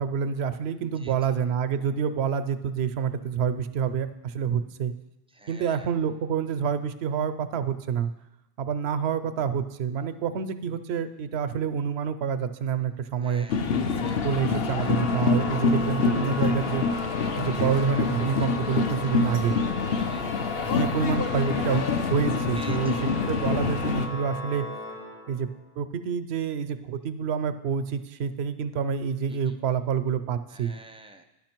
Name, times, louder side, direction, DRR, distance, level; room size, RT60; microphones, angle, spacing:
voice 1, 0.0-4.9 5.5-8.1 8.6-13.5 14.2-16.8 17.4-19.6 20.7-21.8 22.1-22.9 23.3-24.7 25.3-25.5 25.8-30.7, right 7 dB, 90° right, 11 dB, 0.8 m, -27 dB
voice 2, 5.3-5.9 13.2-14.0 14.8-15.0 19.9-20.3 22.5-23.1 29.3-29.5 30.5-31.2, right 2 dB, 10° right, 5 dB, 0.4 m, -48 dB
sound 1, 13.5-24.1, left 5 dB, 70° left, 0.9 m, -26 dB
Organ, 14.8-25.7, left 2 dB, 40° left, 0.8 m, -36 dB
10.5 x 5.9 x 4.5 m, 0.98 s
omnidirectional pair, 1.0 m